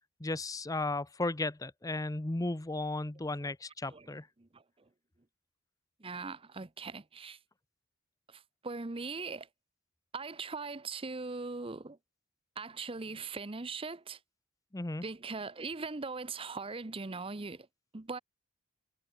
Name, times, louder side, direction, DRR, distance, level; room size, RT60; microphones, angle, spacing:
voice 1, 0.2-4.3 14.7-15.0, left 2 dB, 15° left, 0.7 m, -35 dB
voice 2, 6.0-7.4 8.3-9.5 10.1-12.0 12.6-14.2 15.0-17.7 17.9-18.2, right 4 dB, 25° right, 0.8 m, -40 dB
head